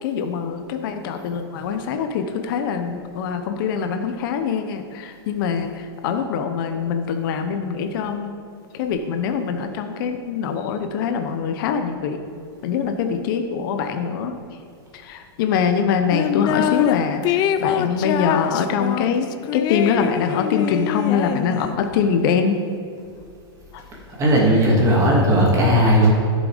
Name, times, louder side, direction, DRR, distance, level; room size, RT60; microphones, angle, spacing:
voice 1, 0.0-8.4 8.7-12.2 12.6-14.3 14.9-22.6 23.7-23.8, left 6 dB, 50° left, 6 dB, 0.9 m, -23 dB
sound 1, 16.1-17.0 17.2-21.9, left 11 dB, 30° left, 0.4 m, -24 dB
voice 2, 24.1-26.1, equal, 20° right, -3 dB, 2.7 m, -16 dB
11.0 x 6.4 x 5.1 m, 2.3 s
hypercardioid pair, 135°, 14 cm